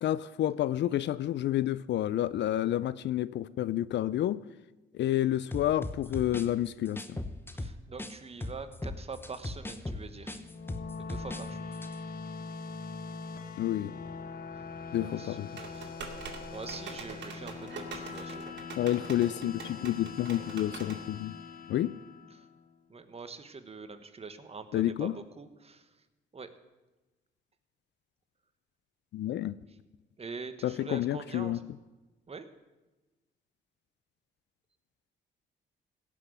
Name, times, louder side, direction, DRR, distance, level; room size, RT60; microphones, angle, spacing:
voice 1, 0.0-4.4 4.9-7.2 13.6-13.9 14.9-15.5 18.8-21.3 21.7-21.9 24.7-25.1 29.1-29.6 30.6-31.6, left 12 dB, 65° left, 18 dB, 0.5 m, -29 dB
sound 1, 5.5-8.1 8.4-11.5 11.7-11.9, left 2 dB, 10° left, 1.0 m, -38 dB
voice 2, 7.5-10.4 11.0-11.8 14.5-14.7 14.9-15.9 16.5-18.6 22.3-22.5 22.9-25.9 26.3-26.5 29.7-29.8 30.2-31.6 32.3-32.5, right 4 dB, 30° right, 10 dB, 1.2 m, -44 dB
sound 2, 10.3-22.7, left 4 dB, 45° left, 1.2 m, -42 dB
sound 3, 15.6-21.0, right 5 dB, 65° right, 2.3 m, -44 dB
16.5 x 6.2 x 8.1 m, 1.1 s
cardioid pair, 90°, 20 cm